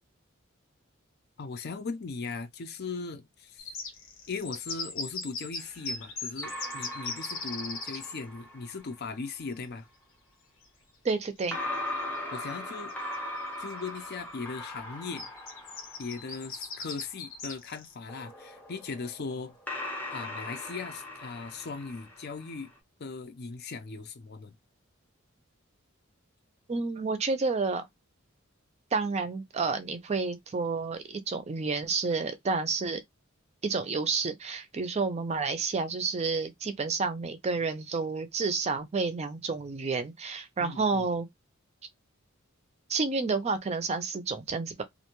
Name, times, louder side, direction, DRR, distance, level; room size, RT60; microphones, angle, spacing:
voice 1, 1.4-3.7 4.3-9.9 12.3-12.9 13.6-15.3 16.0-19.5 20.1-22.7 23.0-24.5 40.6-41.1, left 4 dB, 50° left, 0.5 m, -38 dB
sound 1, 3.6-8.2 10.6-10.7 11.1-11.2 12.5-12.6 12.9-13.4 13.9-14.1 15.2-17.9, left 4 dB, 85° left, 1.1 m, -38 dB
sound 2, 5.6-9.0 11.5-17.0 18.1-22.7, left 1 dB, 10° left, 0.6 m, -40 dB
voice 2, 11.0-11.6 26.7-27.9 28.9-33.0 33.6-41.3 42.9-44.8, right 4 dB, 30° right, 0.4 m, -30 dB
2.5 x 2.2 x 2.9 m
head